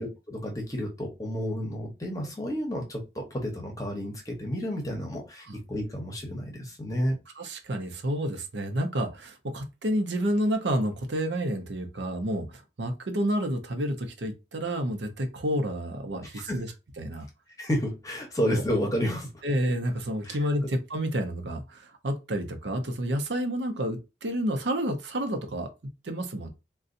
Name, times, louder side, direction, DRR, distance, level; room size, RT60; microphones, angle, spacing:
voice 1, 0.0-7.2 16.3-16.6 17.6-19.3 20.2-20.4, equal, 20° left, 0.9 m, -31 dB
voice 2, 7.4-16.7 17.0-17.3 19.4-25.7 26.0-26.5, equal, 85° right, 0.8 m, -29 dB
3.9 x 2.3 x 2.6 m
head